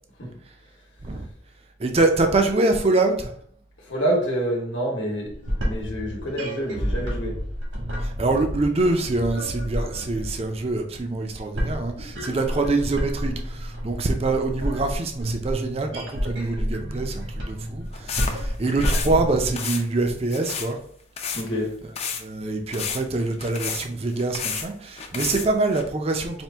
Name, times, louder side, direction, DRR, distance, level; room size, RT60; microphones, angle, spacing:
voice 1, 1.8-3.3 8.0-20.8 22.2-26.4, right 2 dB, 30° right, 5 dB, 0.4 m, -25 dB
voice 2, 3.8-5.3 5.6-7.4 21.3-21.8, right 1 dB, 75° left, -1 dB, 1.0 m, -27 dB
sound 1, 5.2-19.6, equal, 80° right, 1.5 m, -30 dB
sound 2, 17.9-19.1 19.5-19.8 20.3-20.7 21.2-21.4 22.0-22.2 22.7-24.7 25.0-25.8, left 6 dB, 35° left, 0.4 m, -31 dB
4.4 x 2.5 x 3.4 m, 0.63 s
head